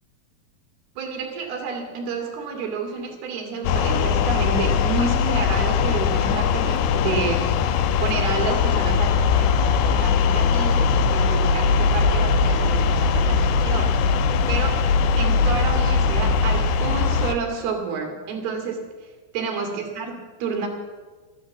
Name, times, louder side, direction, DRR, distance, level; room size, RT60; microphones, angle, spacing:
voice 1, 1.0-7.4 8.0-14.0 14.5-14.8 15.2-18.8 19.3-20.1 20.4-20.7, right 5 dB, 70° right, 2 dB, 4.1 m, -29 dB
sound 1, 3.6-17.3, left 5 dB, 85° left, 2.7 m, -20 dB
13.5 x 12.5 x 7.1 m, 1.4 s
omnidirectional pair, 4.6 m